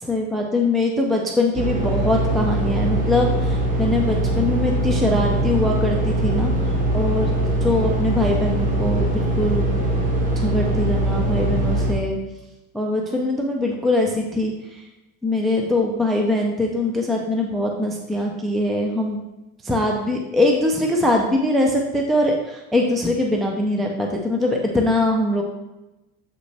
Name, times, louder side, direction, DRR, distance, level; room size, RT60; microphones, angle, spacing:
voice 1, 0.0-9.7 10.4-12.2 12.7-14.8 15.2-19.2 19.6-25.4, left 1 dB, ahead, 1 dB, 0.4 m, -22 dB
sound 1, 1.6-11.9, right 1 dB, 20° right, 0.9 m, -22 dB
7.6 x 5.1 x 3.3 m, 1.0 s
cardioid pair, 160°, 38 cm